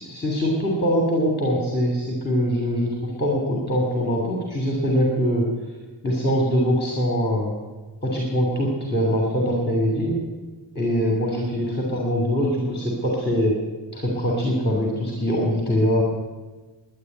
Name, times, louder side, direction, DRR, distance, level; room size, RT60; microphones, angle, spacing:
voice 1, 0.0-5.5 6.0-7.5 8.0-10.2 10.7-13.5 13.9-16.0, equal, 20° left, -1 dB, 2.7 m, -23 dB
11.0 x 10.5 x 9.6 m, 1.3 s
wide cardioid pair, 100°, 46 cm